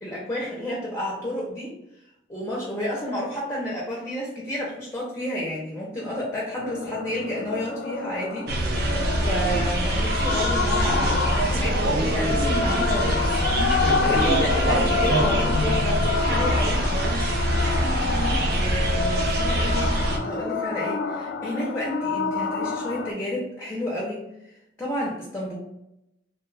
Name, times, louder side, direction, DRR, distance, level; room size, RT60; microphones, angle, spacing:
voice 1, 0.0-1.7 2.3-9.0 9.2-16.9 18.5-20.0 20.2-24.2 24.8-25.6, left 1 dB, 15° left, -5 dB, 0.6 m, -31 dB
sound 1, 6.6-23.1, left 4 dB, 70° left, 0.3 m, -28 dB
sound 2, 8.5-20.2, right 1 dB, 60° right, 0.5 m, -24 dB
2.9 x 2.3 x 3.2 m, 0.85 s
head